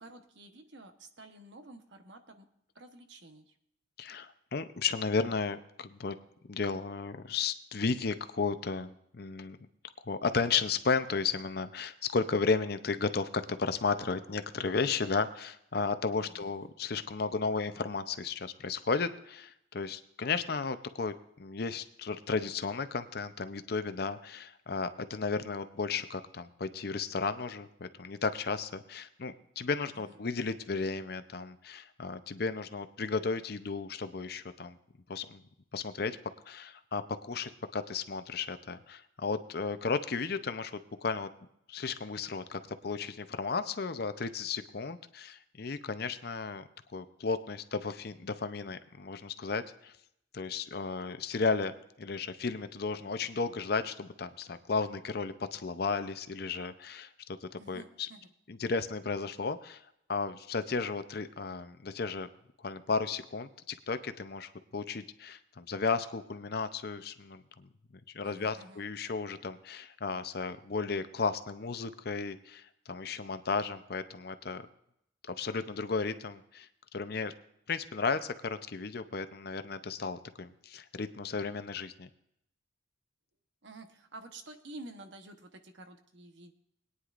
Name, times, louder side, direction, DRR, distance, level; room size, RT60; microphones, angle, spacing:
voice 1, 0.0-2.5 2.7-3.4 16.2-16.7 30.1-30.2 57.6-58.2 68.2-68.8 83.6-86.5, right 2 dB, 65° right, 6 dB, 1.0 m, -50 dB
voice 2, 4.0-6.2 6.4-9.6 10.1-34.8 35.1-35.4 35.7-36.2 36.5-37.0 37.3-41.3 41.7-49.9 50.3-51.7 52.0-57.1 57.4-58.1 58.5-59.8 60.1-62.3 62.6-67.7 68.1-74.7 75.3-77.3 77.7-82.1, left 4 dB, 55° left, 11 dB, 0.6 m, -34 dB
21.0 x 9.6 x 2.5 m, 0.76 s
head